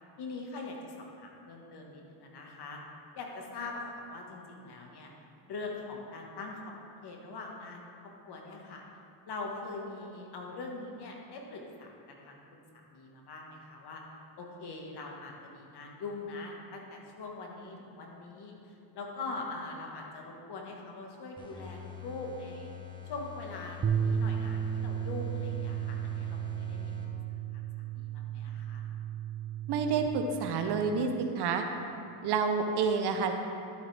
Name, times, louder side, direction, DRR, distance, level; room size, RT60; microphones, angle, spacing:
voice 1, 0.2-2.8 3.2-5.1 5.5-6.7 7.0-8.8 9.3-14.0 14.4-22.7 23.1-26.9 27.5-27.7 28.0-28.8, left 3 dB, 50° left, 0 dB, 1.7 m, -42 dB
sound 1, 21.4-27.5, left 9 dB, 10° left, 1.5 m, -46 dB
sound 2, 23.8-30.1, right 9 dB, 25° right, 0.7 m, -34 dB
voice 2, 29.7-31.1 31.3-31.6 32.2-33.3, right 5 dB, 50° right, 5 dB, 1.0 m, -28 dB
11.5 x 7.9 x 3.5 m, 2.7 s
supercardioid pair, 100°, 50 cm